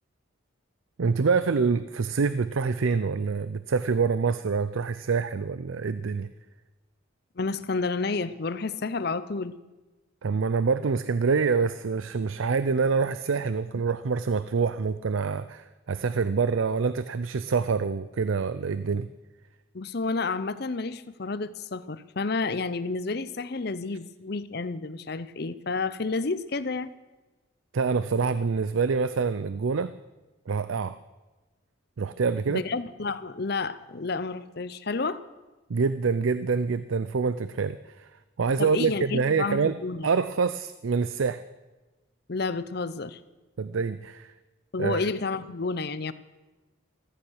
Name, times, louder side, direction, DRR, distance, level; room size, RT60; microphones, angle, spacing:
voice 1, 1.0-6.3 10.2-19.1 27.7-29.9 30.5-31.0 32.0-32.6 35.7-38.1 38.4-39.8 40.0-41.4 43.6-44.3 44.8-45.0, right 5 dB, 75° right, 14 dB, 0.5 m, -26 dB
voice 2, 7.4-9.5 19.7-26.9 32.5-35.2 38.6-40.1 42.3-43.2 44.7-46.1, left 3 dB, 50° left, 15 dB, 0.7 m, -30 dB
14.5 x 14.5 x 6.4 m, 1.2 s
head